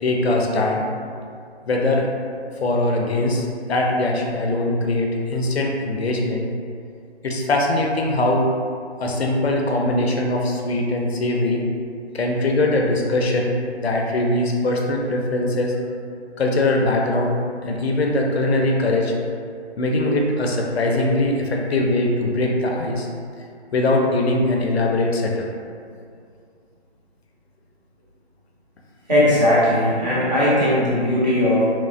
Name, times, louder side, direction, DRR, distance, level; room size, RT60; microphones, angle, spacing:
voice 1, 0.0-0.8 1.7-2.1 2.6-6.5 7.2-8.5 9.0-11.6 12.1-13.5 13.8-15.7 16.4-17.4 17.6-19.1 19.8-23.1 23.7-25.5, left 2 dB, 70° left, 1 dB, 0.5 m, -21 dB
voice 2, 29.1-31.6, left 1 dB, 40° right, -9 dB, 0.8 m, -18 dB
2.9 x 2.1 x 2.5 m, 2.3 s
hypercardioid pair, 170°, 34 cm